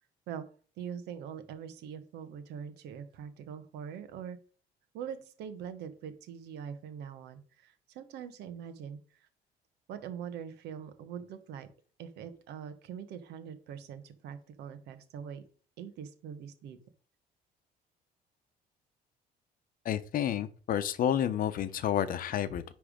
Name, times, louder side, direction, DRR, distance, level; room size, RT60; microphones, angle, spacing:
voice 1, 0.8-4.4 4.9-9.3 9.9-11.7 12.0-15.4 15.8-16.8, right 8 dB, 80° right, 10 dB, 1.1 m, -43 dB
voice 2, 19.8-22.6, left 10 dB, 55° left, 12 dB, 0.8 m, -30 dB
10.0 x 3.5 x 5.0 m, 0.41 s
cardioid pair, 110°, 17 cm